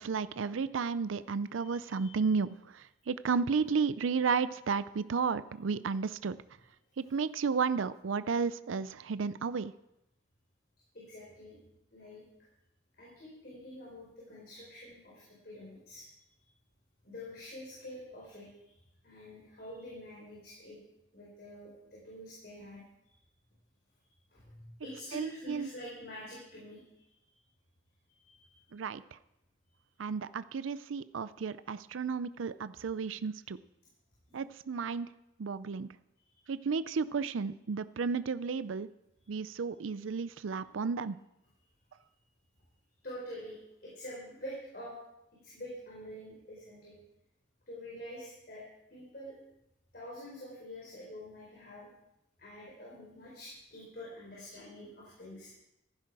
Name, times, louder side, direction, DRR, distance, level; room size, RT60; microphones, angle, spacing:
voice 1, 0.0-6.4 7.0-9.7 25.1-25.7 28.7-29.2 30.0-33.6 34.3-35.1 35.4-35.9 36.5-38.9 39.3-41.2, right 5 dB, 85° right, 15 dB, 0.5 m, -33 dB
voice 2, 1.6-2.1 10.9-11.6 11.9-12.2 13.0-16.1 17.0-18.7 19.0-20.8 21.1-23.1 24.3-27.3 28.1-28.6 29.7-29.8 36.3-36.5 43.0-44.9 45.4-46.9 47.7-48.6 48.9-49.4 49.9-51.9 52.4-55.5, left 1 dB, 50° left, -5 dB, 4.5 m, -47 dB
15.0 x 11.5 x 4.8 m, 0.85 s
head